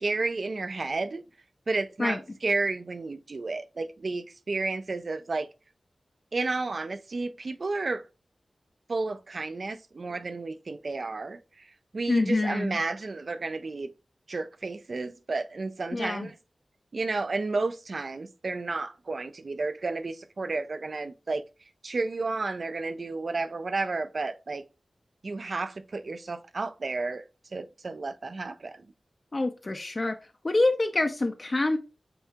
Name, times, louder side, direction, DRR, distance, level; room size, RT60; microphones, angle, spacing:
voice 1, 0.0-1.2 1.7-5.5 6.3-8.0 8.9-13.9 14.3-16.4 16.9-21.4 21.8-24.6 25.2-27.2 27.5-28.9, right 3 dB, 60° right, 0.4 m, -32 dB
voice 2, 12.1-12.8 15.9-16.3 29.3-30.1 30.4-31.8, left 2 dB, 40° left, 0.4 m, -26 dB
7.7 x 2.7 x 2.2 m
wide cardioid pair, 80°, 0 cm